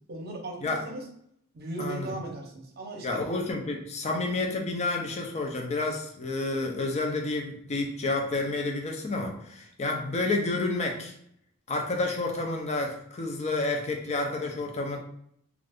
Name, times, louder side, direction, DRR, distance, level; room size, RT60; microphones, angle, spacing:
voice 1, 0.1-1.1 1.5-3.2 4.0-4.2, right 2 dB, 50° right, 1 dB, 0.7 m, -37 dB
voice 2, 1.8-2.1 3.0-11.1 11.7-15.0, left 2 dB, 30° left, 2 dB, 0.5 m, -30 dB
2.4 x 2.4 x 3.4 m, 0.69 s
head